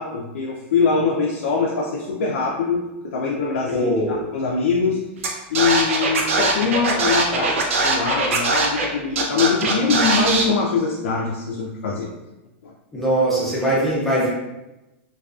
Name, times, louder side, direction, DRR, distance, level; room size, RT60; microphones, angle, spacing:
voice 1, 0.0-5.0 5.5-12.1 12.6-12.7, left 5 dB, 85° left, -2 dB, 0.3 m, -23 dB
voice 2, 3.7-4.2 12.9-14.3, right 1 dB, 5° left, -7 dB, 0.5 m, -21 dB
Scratching (performance technique), 5.2-5.3 5.5-8.9 9.1-10.4, right 3 dB, 85° right, 0.5 m, -21 dB
2.3 x 2.2 x 2.4 m, 0.99 s
supercardioid pair, 180°, 7 cm